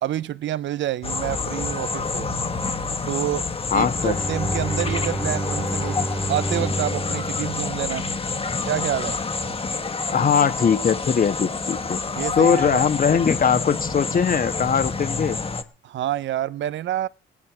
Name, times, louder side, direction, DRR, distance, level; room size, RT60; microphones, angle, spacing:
voice 1, 0.0-2.3 3.1-6.0 6.3-8.1 8.6-9.2 12.2-12.8 15.8-17.1, right 12 dB, 70° right, 0.7 m, -28 dB
sound 1, 1.0-15.6, left 4 dB, 30° left, 1.7 m, -28 dB
Bowed string instrument, 3.5-8.8, right 1 dB, 5° right, 1.0 m, -31 dB
voice 2, 3.7-4.2 10.1-12.0 12.4-15.4, left 7 dB, 45° left, 1.4 m, -20 dB
17.5 x 11.0 x 6.1 m
cardioid pair, 90°, 20 cm